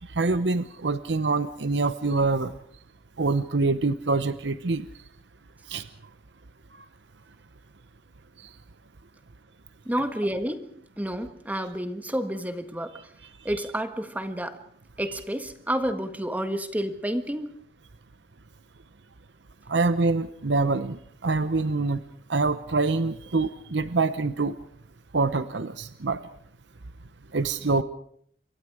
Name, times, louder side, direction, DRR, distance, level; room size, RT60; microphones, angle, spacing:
voice 1, 0.2-2.5 3.2-4.9 5.7-5.9 19.7-22.0 22.3-24.6 25.1-26.2 27.3-27.8, right 3 dB, 80° right, 13 dB, 0.9 m, -25 dB
voice 2, 9.8-10.7 11.0-13.1 13.4-14.6 15.0-17.5, equal, 10° right, 9 dB, 1.5 m, -30 dB
27.0 x 24.0 x 4.9 m, 0.63 s
head